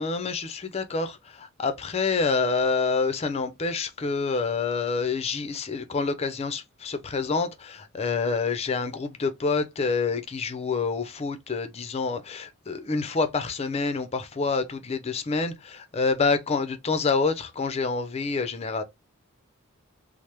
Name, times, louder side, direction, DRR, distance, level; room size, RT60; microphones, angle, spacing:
voice 1, 0.0-18.8, left 4 dB, 30° left, 0.4 m, -27 dB
3.2 x 2.0 x 2.9 m
head